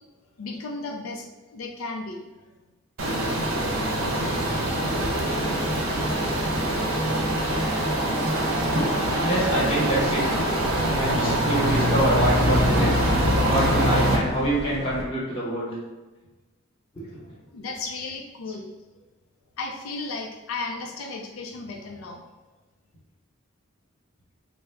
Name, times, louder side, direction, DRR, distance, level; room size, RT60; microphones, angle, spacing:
voice 1, 0.4-2.2 17.5-18.7 19.6-22.2, left 3 dB, 90° left, 2 dB, 0.4 m, -34 dB
sound 1, 3.0-14.2, right 1 dB, 85° right, 0.6 m, -23 dB
voice 2, 9.2-10.4 10.8-12.9 13.5-15.7 16.9-17.2, right 1 dB, 25° left, -5 dB, 1.0 m, -26 dB
sound 2, 9.4-15.0, right 1 dB, 35° right, 0.4 m, -37 dB
3.4 x 2.0 x 3.3 m, 1.2 s
head